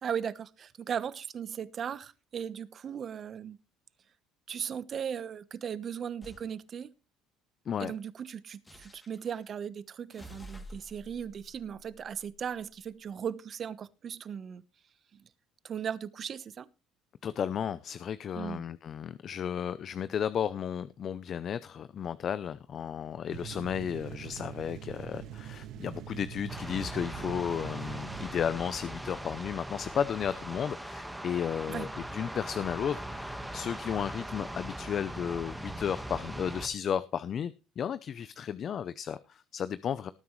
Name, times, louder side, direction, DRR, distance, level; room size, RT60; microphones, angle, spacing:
voice 1, 0.0-3.6 4.5-6.9 7.8-14.6 15.1-15.2 15.6-16.7 18.3-18.6 31.7-31.9, right 8 dB, 40° right, 1.1 m, -37 dB
sound 1, 6.2-6.5 8.6-9.4 10.1-12.7, equal, 15° left, 2.7 m, -50 dB
voice 2, 17.2-40.1, left 8 dB, 45° left, 0.6 m, -34 dB
sound 2, 23.3-28.3, right 10 dB, 65° right, 1.5 m, -43 dB
sound 3, 26.5-36.7, right 1 dB, 5° right, 1.6 m, -40 dB
18.5 x 9.5 x 3.2 m
cardioid pair, 110°, 0 cm